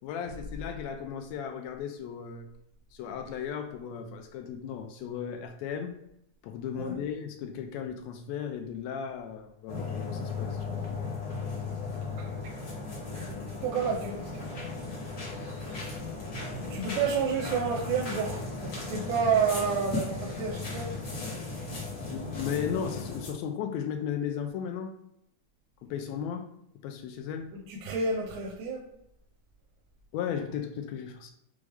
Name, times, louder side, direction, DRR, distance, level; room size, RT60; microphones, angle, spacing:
voice 1, 0.0-2.5 2.9-6.0 6.4-10.8 13.1-13.3 22.0-25.0 25.8-26.5 26.8-27.5 30.1-31.3, left 8 dB, 80° left, 6 dB, 1.6 m, -35 dB
sound 1, 9.7-23.3, left 4 dB, 60° left, 0.9 m, -36 dB
voice 2, 12.0-12.6 13.1-14.6 15.6-16.0 16.6-20.9 27.5-28.8, right 5 dB, 85° right, -2 dB, 2.2 m, -31 dB
6.1 x 2.4 x 3.4 m, 0.77 s
omnidirectional pair, 3.5 m